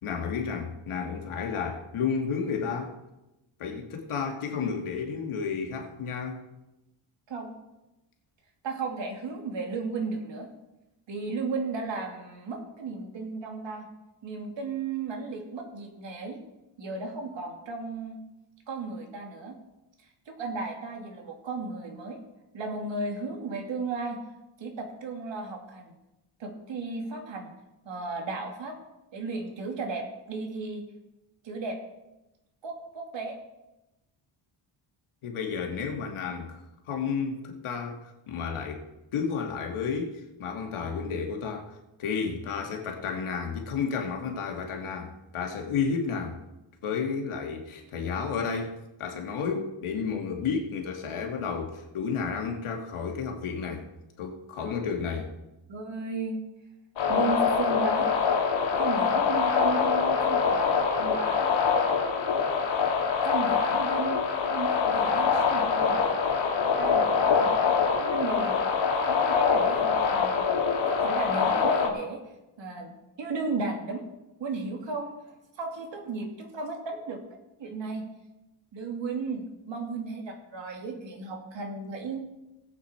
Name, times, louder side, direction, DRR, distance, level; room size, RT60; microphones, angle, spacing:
voice 1, 0.0-3.0 3.6-6.4 35.2-36.6 36.9-38.0 38.3-38.8 39.1-46.4 46.8-48.7 49.0-53.9 54.2-55.3, left 6 dB, 85° left, 2 dB, 2.3 m, -32 dB
voice 2, 8.6-10.5 11.1-13.9 14.2-16.4 16.8-18.2 18.7-19.6 20.3-22.2 22.5-24.2 24.6-25.9 26.4-27.5 27.8-28.8 29.1-30.8 31.4-31.8 32.6-33.4 54.6-54.8 55.7-56.4 57.1-58.1 58.7-61.5 63.2-64.2 64.5-66.1 66.8-70.4 70.7-72.2 72.6-72.9 73.2-74.0 74.4-75.1 75.6-77.2 77.6-78.1 78.7-82.2, right 3 dB, 60° right, 2 dB, 2.7 m, -34 dB
sound 1, 57.0-71.9, left 5 dB, 65° left, 2.3 m, -24 dB
19.0 x 8.3 x 4.5 m, 0.97 s
cardioid pair, 130°, 49 cm